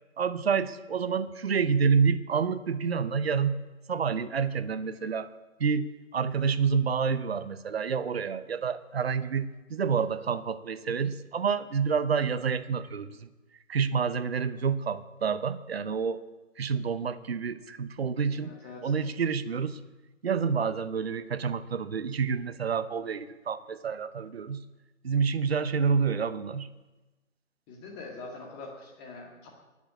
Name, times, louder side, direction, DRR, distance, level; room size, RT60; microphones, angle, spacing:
voice 1, 0.2-3.6 3.9-5.3 5.6-5.9 6.1-13.3 13.7-16.2 16.6-18.6 18.8-19.8 20.2-24.6 25.0-26.7, right 6 dB, 50° right, 13 dB, 0.8 m, -28 dB
voice 2, 18.3-18.9 27.7-29.5, left 3 dB, 15° left, 1 dB, 2.0 m, -44 dB
13.0 x 11.0 x 8.3 m, 1.1 s
figure-of-eight pair, 145°, 40 cm